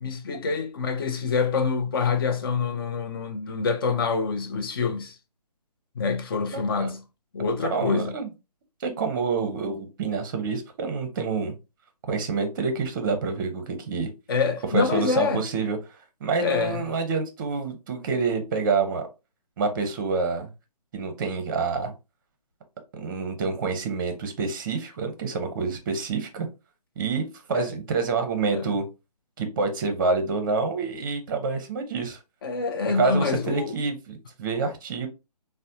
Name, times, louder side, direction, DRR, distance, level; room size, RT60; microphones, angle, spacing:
voice 1, 0.0-5.2 6.0-7.0 7.3-8.1 14.3-15.4 16.4-16.8 27.5-27.7 28.5-28.7 32.4-33.7, left 5 dB, 35° left, 0.5 m, -26 dB
voice 2, 6.5-6.9 7.5-8.3 8.8-11.5 12.0-14.1 14.7-15.8 16.2-19.1 19.6-20.5 20.9-21.9 23.0-26.5 27.0-28.8 29.4-32.2 32.8-35.1, right 4 dB, 30° right, 0.7 m, -27 dB
4.1 x 2.1 x 2.6 m
figure-of-eight pair, 150°, 21 cm